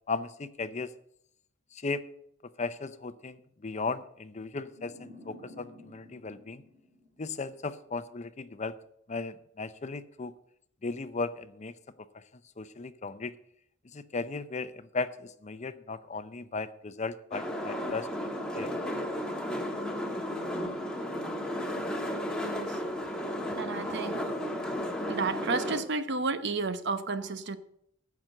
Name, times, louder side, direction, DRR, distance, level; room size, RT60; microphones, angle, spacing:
voice 1, 0.1-0.9 1.7-2.0 2.4-6.6 7.2-8.7 9.1-10.3 10.8-11.7 12.1-12.2 12.6-13.4 13.9-18.1 18.5-18.7, left 3 dB, 35° left, 12 dB, 0.6 m, -36 dB
sound 1, 4.7-7.7, left 1 dB, 40° right, 3.1 m, -53 dB
sound 2, 17.3-25.8, equal, 5° left, 1.5 m, -34 dB
voice 2, 22.4-22.8 23.6-24.2 25.1-27.6, right 3 dB, 60° right, 11 dB, 0.9 m, -32 dB
15.0 x 6.0 x 6.5 m, 0.72 s
head